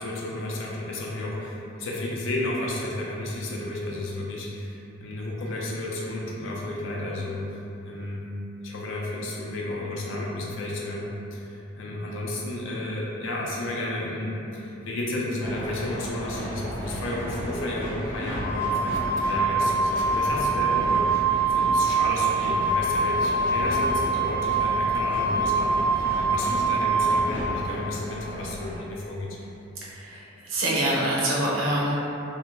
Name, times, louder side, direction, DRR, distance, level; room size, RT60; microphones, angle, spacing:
voice 1, 0.0-7.6 7.8-8.3 8.6-11.0 11.3-29.4, left 1 dB, 70° left, -3 dB, 0.5 m, -32 dB
sound 1, 15.4-28.8, equal, 10° left, 0.6 m, -35 dB
Wind instrument woodwind instrument, 18.4-27.4, right 3 dB, 50° right, 0.4 m, -24 dB
voice 2, 29.9-32.0, right 1 dB, 90° right, -6 dB, 0.7 m, -25 dB
2.7 x 2.2 x 3.0 m, 2.8 s
head